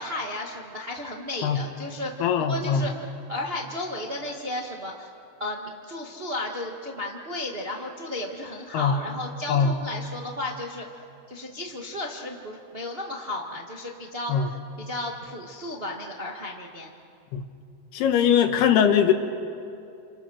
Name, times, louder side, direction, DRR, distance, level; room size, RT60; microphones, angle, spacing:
voice 1, 0.0-5.1 5.4-10.8 11.3-14.4 14.8-16.9, left 1 dB, 80° right, 0 dB, 0.5 m, -34 dB
voice 2, 2.2-2.8 8.7-9.0 9.5-9.7 14.3-14.5 17.3-17.4 17.9-19.1, left 8 dB, 80° left, 6 dB, 3.4 m, -21 dB
30.0 x 29.5 x 6.4 m, 2.5 s
omnidirectional pair, 4.6 m